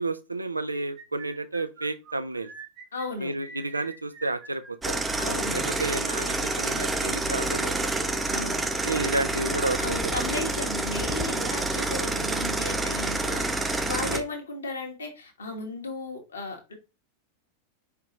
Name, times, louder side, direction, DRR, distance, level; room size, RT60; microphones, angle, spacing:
voice 1, 0.0-2.5 3.2-5.0 5.5-8.1 8.8-10.2 11.4-11.5 13.9-14.3, right 2 dB, 80° right, 0.4 m, -31 dB
sound 1, 0.7-8.8, right 5 dB, 30° right, 1.1 m, -46 dB
voice 2, 2.9-3.3 5.2-5.6 8.3-8.7 9.8-16.7, left 2 dB, 70° left, 1.4 m, -35 dB
sound 2, 4.8-14.2, right 2 dB, 10° right, 0.5 m, -28 dB
4.8 x 3.4 x 3.0 m
figure-of-eight pair, 90°, 0 cm